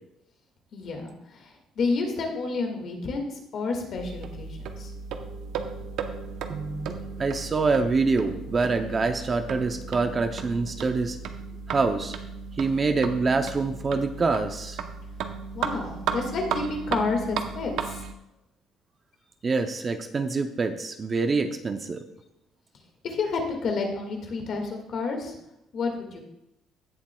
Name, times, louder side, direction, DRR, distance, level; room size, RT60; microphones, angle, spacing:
voice 1, 0.7-4.9 15.5-18.0 23.0-25.3 25.7-26.2, left 4 dB, 45° left, 3 dB, 1.8 m, -30 dB
sound 1, 4.0-18.1, right 6 dB, 70° right, 0.7 m, -35 dB
voice 2, 6.5-11.2 11.7-12.2 12.6-14.8 19.4-22.0, right 4 dB, 25° right, 7 dB, 0.5 m, -26 dB
16.5 x 7.4 x 2.3 m, 0.86 s
cardioid pair, 165°, 0 cm